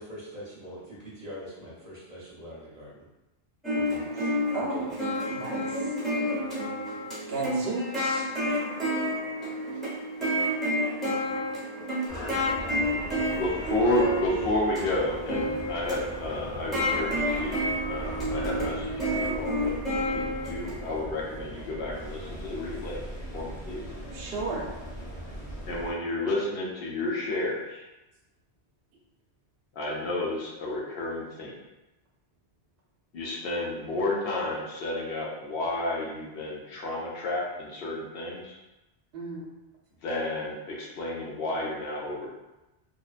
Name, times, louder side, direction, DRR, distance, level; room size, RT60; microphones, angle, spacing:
voice 1, 0.0-3.0 3.7-4.9, equal, 40° right, -7 dB, 0.8 m, -44 dB
sound 1, 3.6-20.9, equal, ahead, 0.8 m, -30 dB
voice 2, 5.3-5.8 7.3-8.3 24.1-24.7 39.1-39.4, right 3 dB, 70° right, -2 dB, 0.8 m, -33 dB
sound 2, 12.1-25.9, equal, 85° left, 1.1 m, -39 dB
voice 3, 13.4-23.0 23.3-23.8 25.7-27.8 29.7-31.6 33.1-38.6 40.0-42.3, left 2 dB, 65° left, -3 dB, 0.8 m, -31 dB
2.7 x 2.1 x 2.4 m, 1.0 s
omnidirectional pair, 1.1 m